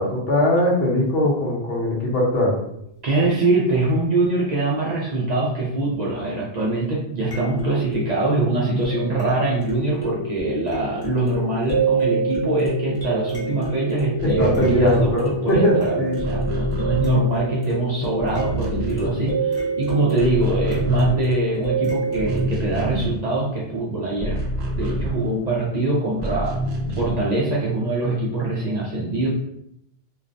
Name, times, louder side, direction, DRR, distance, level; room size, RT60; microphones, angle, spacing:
voice 1, 0.0-2.6 14.2-16.2, left 1 dB, 70° left, -3 dB, 0.9 m, -20 dB
sound 1, 2.6-2.7 7.3-22.4, right 4 dB, 25° left, 0.6 m, -28 dB
voice 2, 3.0-24.4 24.7-26.6 26.9-29.3, right 2 dB, 55° right, -4 dB, 0.5 m, -23 dB
sound 2, 14.1-17.7 18.0-19.7 20.0-25.6 26.1-27.4, right 1 dB, 80° right, 0.8 m, -27 dB
2.4 x 2.1 x 2.5 m, 0.77 s
omnidirectional pair, 1.1 m